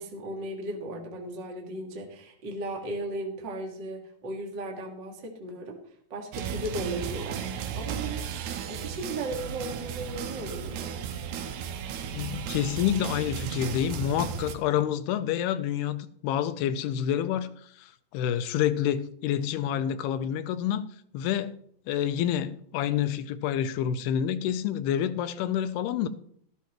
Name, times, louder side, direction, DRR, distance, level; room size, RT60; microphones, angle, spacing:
voice 1, 0.0-5.8 6.1-11.0, right 1 dB, 45° right, 1.5 m, -36 dB
sound 1, 6.3-14.6, right 8 dB, 90° right, 3.0 m, -35 dB
voice 2, 12.1-17.5 17.8-20.9 21.1-21.6 21.9-26.1, left 10 dB, 90° left, 2.7 m, -28 dB
13.5 x 13.0 x 3.0 m
omnidirectional pair, 4.6 m